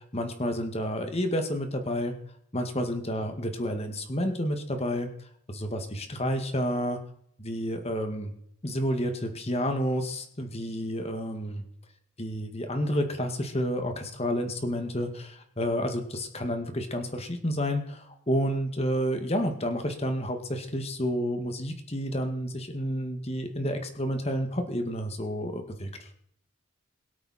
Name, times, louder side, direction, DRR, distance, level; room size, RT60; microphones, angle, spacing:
voice 1, 0.1-2.1 2.5-5.1 5.5-7.0 7.4-8.3 8.6-11.6 12.2-26.1, equal, 30° left, 6 dB, 1.9 m, -30 dB
22.5 x 8.6 x 4.4 m, 0.69 s
head